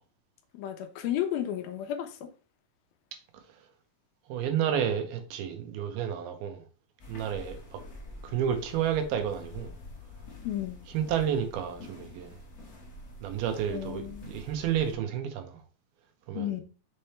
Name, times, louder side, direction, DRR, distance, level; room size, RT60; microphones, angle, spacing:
voice 1, 0.5-2.3 10.4-10.8 13.7-14.4 16.3-16.6, left 11 dB, 80° left, 2.6 m, -33 dB
voice 2, 4.3-6.6 7.1-7.8 8.2-9.7 10.9-12.4 13.2-15.6 16.3-16.6, right 9 dB, 85° right, 2.8 m, -31 dB
sound 1, 7.0-14.9, left 2 dB, 60° left, 0.9 m, -47 dB
6.7 x 3.3 x 4.3 m
omnidirectional pair, 4.4 m